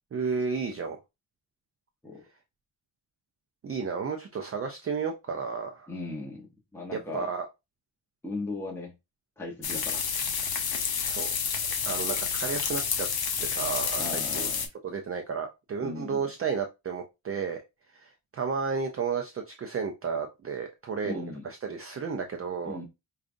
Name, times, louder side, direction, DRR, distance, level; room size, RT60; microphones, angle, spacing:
voice 1, 0.1-1.0 3.6-5.9 6.9-7.5 11.1-11.3 11.9-13.1 13.4-14.5 14.8-17.6 17.9-22.8, right 5 dB, 35° right, 4 dB, 0.4 m, -32 dB
voice 2, 5.9-7.3 8.2-8.9 9.4-10.3 14.0-14.6 15.8-16.2 21.0-21.5 22.6-22.8, left 2 dB, 5° left, -1 dB, 0.8 m, -37 dB
sound 1, 9.6-14.7, left 6 dB, 55° left, 0.7 m, -29 dB
5.0 x 2.3 x 2.5 m, 0.23 s
wide cardioid pair, 175°, 44 cm